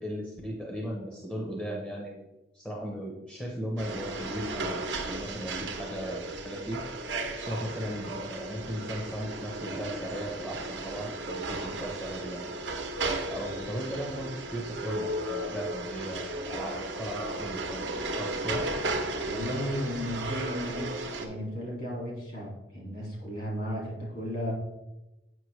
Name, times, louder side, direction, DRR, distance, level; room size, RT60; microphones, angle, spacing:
voice 1, 0.0-2.3 2.5-6.8 7.4-12.4 13.3-17.9 18.1-18.6, equal, 5° left, -2 dB, 0.8 m, -37 dB
sound 1, 3.8-21.3, right 2 dB, 80° right, 0.9 m, -35 dB
voice 2, 19.3-24.5, equal, 55° left, -3 dB, 2.2 m, -34 dB
7.7 x 5.3 x 3.2 m, 0.97 s
head